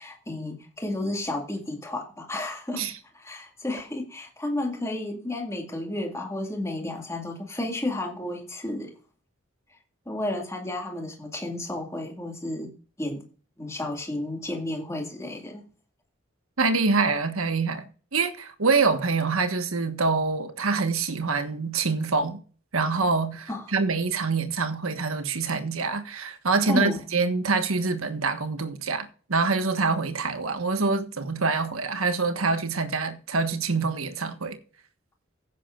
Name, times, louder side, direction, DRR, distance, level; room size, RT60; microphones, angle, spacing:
voice 1, 0.0-2.9 3.1-8.9 10.1-12.7 13.0-13.2 13.6-15.7 23.5-23.6 26.6-27.0, left 1 dB, 15° left, 2.1 m, -32 dB
voice 2, 16.6-17.8 18.1-22.4 22.7-34.6, right 4 dB, 90° right, 1.4 m, -25 dB
16.0 x 8.3 x 2.5 m
head